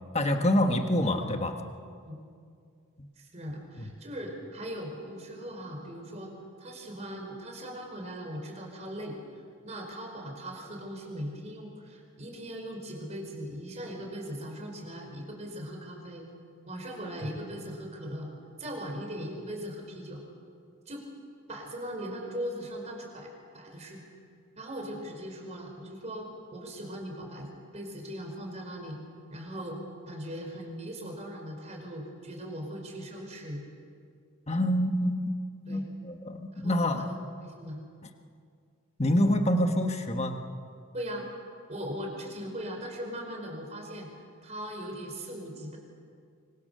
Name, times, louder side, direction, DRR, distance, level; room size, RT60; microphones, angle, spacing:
voice 1, 0.1-1.6 3.0-3.1 34.5-35.2 35.6-37.1 39.0-40.5, left 1 dB, 30° left, 5 dB, 1.4 m, -26 dB
voice 2, 3.2-6.3 6.6-9.2 9.6-16.3 16.7-18.3 18.6-20.2 20.9-21.1 21.5-23.3 23.5-24.0 24.6-29.0 29.3-29.8 30.0-33.6 35.7-35.8 36.6-36.8 37.4-37.8 40.9-41.3 41.7-44.1 44.4-45.8, equal, 30° right, 2 dB, 4.9 m, -39 dB
25.0 x 25.0 x 6.8 m, 2.3 s
head